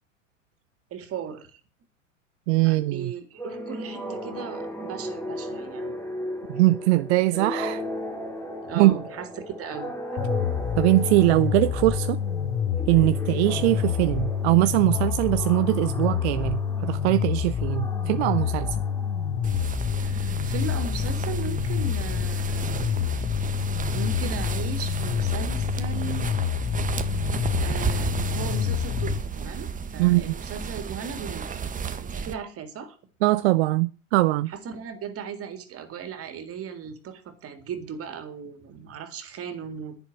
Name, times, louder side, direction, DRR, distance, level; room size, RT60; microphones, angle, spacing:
voice 1, 0.9-1.6 2.6-6.0 8.6-9.3 9.6-9.9 20.0-23.2 23.9-26.4 27.6-31.7 32.0-33.0 34.5-40.0, right 6 dB, 35° right, 3.6 m, -37 dB
voice 2, 2.5-3.1 6.5-7.8 8.7-8.9 10.8-12.2 12.9-18.8 30.0-30.4 33.2-34.5, right 19 dB, 55° right, 0.7 m, -22 dB
sound 1, 3.4-19.8, equal, 5° left, 3.8 m, -36 dB
sound 2, 10.2-29.2, left 8 dB, 30° left, 1.2 m, -27 dB
sound 3, 19.4-32.3, right 6 dB, 20° right, 1.4 m, -33 dB
11.0 x 10.5 x 7.9 m
hypercardioid pair, 95°, 39 cm